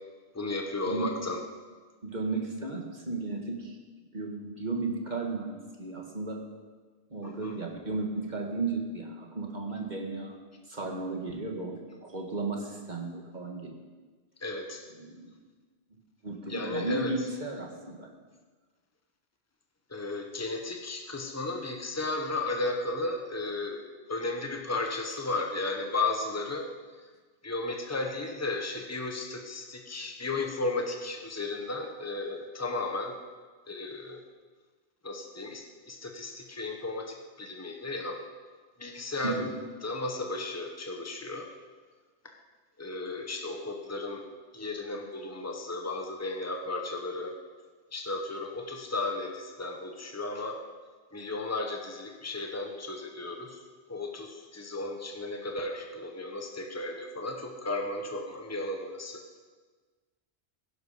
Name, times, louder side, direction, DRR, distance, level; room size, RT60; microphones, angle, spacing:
voice 1, 0.3-1.4 7.2-7.5 14.4-14.8 16.5-17.1 19.9-23.8 24.1-26.7 27.4-33.1 33.7-34.2 35.0-38.2 38.8-39.4 39.8-41.5 42.8-44.2 44.5-47.3 47.9-50.6 51.1-53.6 53.9-59.2, left 2 dB, 15° left, 2 dB, 1.3 m, -34 dB
voice 2, 2.0-3.8 4.1-6.4 7.1-10.4 10.7-13.8 15.0-15.3 16.2-18.1 39.2-39.5, right 3 dB, 40° right, 1 dB, 2.0 m, -34 dB
16.5 x 11.5 x 5.2 m, 1.4 s
omnidirectional pair, 1.1 m